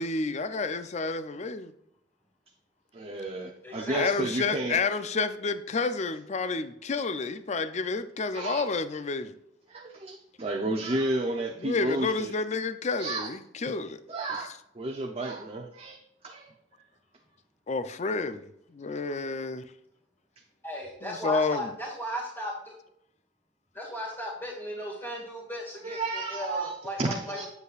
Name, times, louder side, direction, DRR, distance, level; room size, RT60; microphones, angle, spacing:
voice 1, 0.0-1.7 3.9-9.3 11.6-14.0 17.7-19.6 21.0-21.7, left 4 dB, 40° left, 0.5 m, -30 dB
voice 2, 2.9-4.8 8.3-8.6 9.7-12.3 13.0-13.3 13.7-13.8 14.1-16.0 16.2-16.5 25.8-27.5, right 2 dB, 35° right, 0.7 m, -32 dB
voice 3, 3.6-4.1 20.6-22.7 23.7-27.5, equal, 15° left, 1.9 m, -36 dB
8.1 x 8.0 x 2.4 m
head